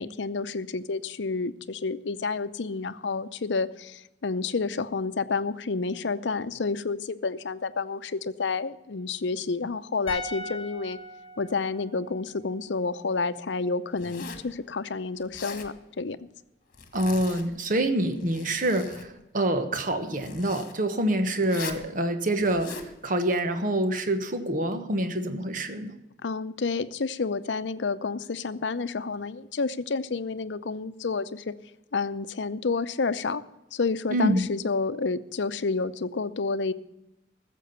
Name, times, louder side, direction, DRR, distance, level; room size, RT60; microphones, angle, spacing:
voice 1, 0.0-11.0 11.4-16.2 26.2-31.5 31.9-33.4 33.7-36.7, left 4 dB, 80° left, 14 dB, 0.6 m, -30 dB
sound 1, 10.1-13.3 13.5-13.7, left 1 dB, 25° left, 4.3 m, -41 dB
Zipper (clothing), 14.0-14.5 15.2-15.7 16.7-17.5 18.1-19.1 20.2-20.7 21.4-21.9 22.4-22.9, left 5 dB, 45° left, 1.7 m, -40 dB
voice 2, 16.9-22.8 23.0-26.0 34.1-34.4, right 1 dB, 45° right, 7 dB, 1.2 m, -26 dB
14.5 x 7.6 x 6.9 m, 0.92 s
head